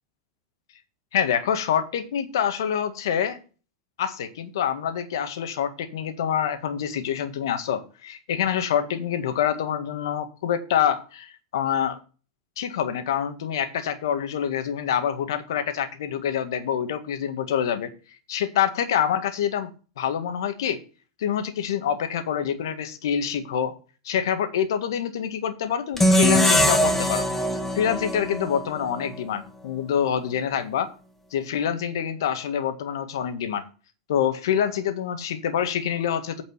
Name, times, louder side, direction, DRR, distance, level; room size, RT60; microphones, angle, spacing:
voice 1, 1.1-3.4 4.0-12.0 12.6-17.9 18.3-20.8 21.2-23.8 24.1-27.3 27.7-30.9 31.3-33.7 34.1-36.4, left 9 dB, 80° left, 1.7 m, -26 dB
sound 1, 26.0-29.1, equal, 10° left, 1.9 m, -22 dB
8.9 x 5.2 x 7.9 m
hypercardioid pair, 110°, 2 cm